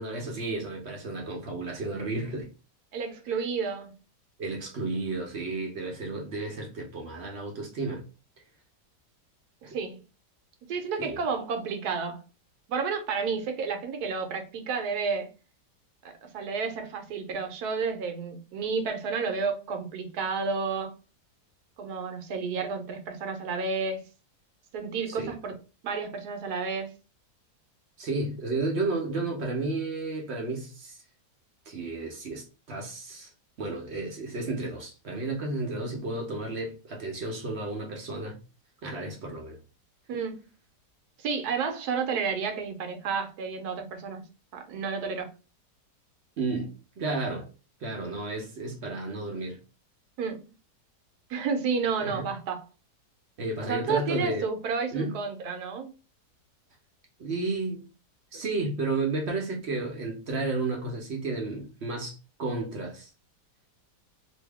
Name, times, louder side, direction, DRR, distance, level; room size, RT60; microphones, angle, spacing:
voice 1, 0.0-2.5 3.3-3.4 4.4-8.0 9.6-9.7 11.0-11.2 25.1-25.3 28.0-31.0 31.7-33.3 33.6-38.4 38.8-39.6 46.4-47.5 47.8-49.6 52.0-52.2 53.4-54.4 54.9-55.2 57.2-57.9 58.3-63.1, right 3 dB, 55° right, 0.7 m, -32 dB
voice 2, 2.9-3.9 9.6-10.0 10.7-12.2 12.7-15.3 16.0-20.9 21.8-24.0 24.7-25.5 25.8-26.9 40.1-40.5 41.2-44.2 44.5-45.3 50.2-50.4 51.3-52.6 53.6-55.9, right 5 dB, 75° right, 1.1 m, -31 dB
2.8 x 2.6 x 3.3 m
omnidirectional pair, 1.8 m